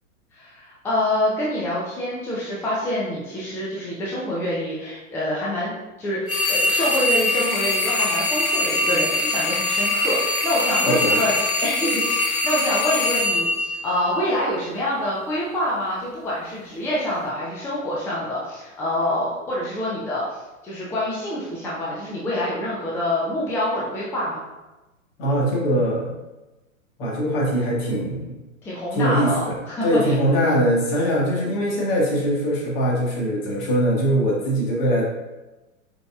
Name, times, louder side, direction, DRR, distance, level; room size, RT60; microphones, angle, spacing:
voice 1, 0.3-24.4 28.6-30.4 31.0-31.2, left 1 dB, 5° left, -6 dB, 0.5 m, -26 dB
sound 1, 6.3-14.5, left 2 dB, 90° left, 0.9 m, -23 dB
voice 2, 10.8-11.3 25.2-26.1 27.0-28.3 28.9-29.6 29.8-35.0, equal, 45° left, -3 dB, 1.6 m, -22 dB
5.0 x 4.4 x 2.3 m, 1.1 s
figure-of-eight pair, 105°, 41 cm